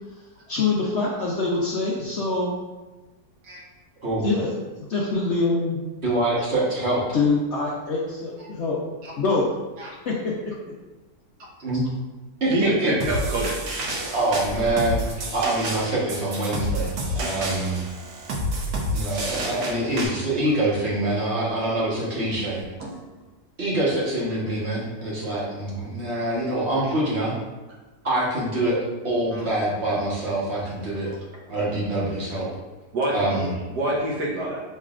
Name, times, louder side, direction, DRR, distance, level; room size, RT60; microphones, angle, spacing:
voice 1, 0.5-2.5 4.2-4.5 4.9-5.8 7.1-8.8 9.2-9.4 10.1-10.3, left 3 dB, 60° left, -3 dB, 0.7 m, -24 dB
voice 2, 6.0-7.0 11.6-11.8 12.4-12.9 14.1-17.8 18.9-22.6 23.6-27.3 28.0-28.8 29.0-31.1 31.5-32.5 33.1-33.5, right 1 dB, 45° right, -6 dB, 1.5 m, -25 dB
voice 3, 12.5-13.6 16.9-17.0 20.1-20.2 22.8-23.1 29.3-29.5 31.1-31.2 32.9-34.6, right 1 dB, 90° right, -4 dB, 1.7 m, -27 dB
sound 1, 13.0-20.1, right 1 dB, 70° right, 1.2 m, -29 dB
6.3 x 3.2 x 2.4 m, 1.2 s
omnidirectional pair, 1.7 m